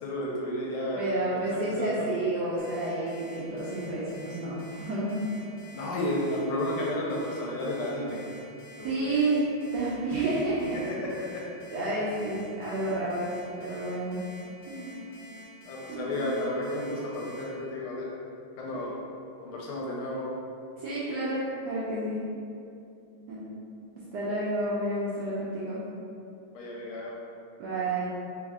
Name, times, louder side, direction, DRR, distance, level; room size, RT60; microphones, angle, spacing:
voice 1, 0.0-1.0 1.3-1.4 1.8-2.1 5.7-8.2 8.8-9.2 10.9-11.4 15.7-18.1 18.6-18.9 19.4-20.3 26.5-27.1, left 1 dB, 80° left, -3 dB, 1.4 m, -32 dB
voice 2, 1.0-5.2 8.8-9.5 9.7-10.8 11.7-13.3 13.6-14.2 14.7-15.1 15.9-16.4 20.8-22.3 23.3-23.5 24.1-25.9 27.6-28.0, right 2 dB, 70° right, -9 dB, 1.0 m, -30 dB
Alarm, 2.6-17.4, left 1 dB, 40° left, 0.8 m, -49 dB
3.5 x 3.1 x 3.5 m, 2.7 s
omnidirectional pair, 2.4 m